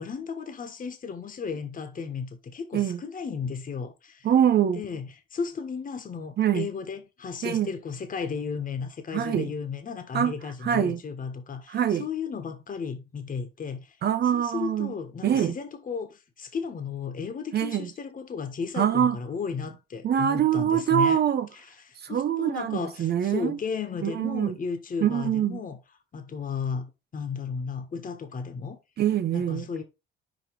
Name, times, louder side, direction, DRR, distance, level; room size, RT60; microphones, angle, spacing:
voice 1, 0.0-4.3 4.7-14.0 14.3-21.2 21.6-21.7 22.1-25.8 26.1-28.8 29.3-29.8, left 5 dB, 45° left, 1.5 m, -34 dB
voice 2, 4.2-4.8 6.4-6.7 7.4-7.7 9.1-9.5 10.1-10.3 10.6-11.0 11.7-12.0 14.0-14.9 15.2-15.6 17.5-17.9 18.8-19.2 20.0-21.5 22.0-23.6 24.0-24.5 25.0-25.6 29.0-29.7, right 9 dB, 55° right, 0.7 m, -24 dB
5.2 x 5.0 x 4.7 m
cardioid pair, 90°, 20 cm